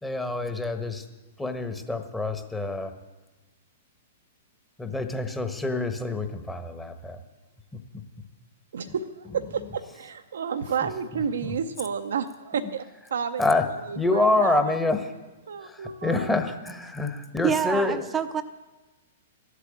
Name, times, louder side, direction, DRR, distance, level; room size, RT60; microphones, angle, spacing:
voice 1, 0.0-1.0 1.4-2.9 4.8-7.2 7.7-7.8 8.9-9.0 10.8-11.6 12.6-12.7 13.4-13.7 13.9-15.1 15.6-18.1, left 2 dB, 10° left, 6 dB, 1.3 m, -27 dB
voice 2, 8.7-12.8 13.1-13.4 13.9-14.8 15.5-16.3, right 6 dB, 70° right, 7 dB, 0.7 m, -31 dB
voice 3, 17.4-18.4, right 8 dB, 20° right, 10 dB, 0.7 m, -26 dB
13.0 x 8.3 x 8.7 m, 1.2 s
figure-of-eight pair, 110°, 0 cm